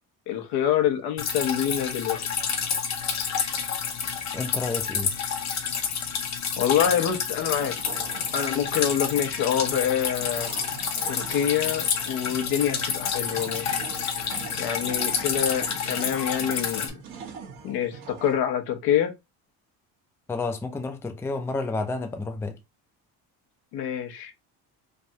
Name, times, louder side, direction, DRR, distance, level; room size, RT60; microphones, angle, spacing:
voice 1, 0.3-2.2 6.6-7.7 8.3-10.5 11.1-13.8 14.6-17.0 17.6-19.1 23.7-24.3, left 9 dB, 70° left, 0.8 m, -26 dB
Drip, 1.2-16.9, left 6 dB, 45° left, 0.8 m, -29 dB
voice 2, 4.3-5.1 20.3-22.6, left 3 dB, 5° left, 0.4 m, -30 dB
sound 1, 7.5-18.4, right 6 dB, 75° right, 1.2 m, -43 dB
3.4 x 2.2 x 2.7 m
supercardioid pair, 85°, 39 cm